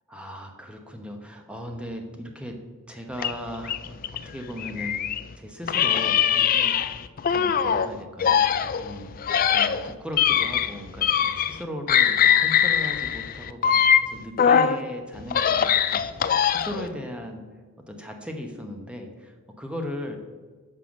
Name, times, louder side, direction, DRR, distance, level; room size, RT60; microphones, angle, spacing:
voice 1, 0.1-2.6 2.9-17.4 17.9-20.2, equal, 5° right, 3 dB, 0.9 m, -37 dB
sound 1, 3.2-5.3 5.7-7.9 8.2-11.6 11.9-14.8 15.2-16.9, left 8 dB, 40° left, 0.3 m, -22 dB
7.4 x 5.6 x 6.3 m, 1.4 s
head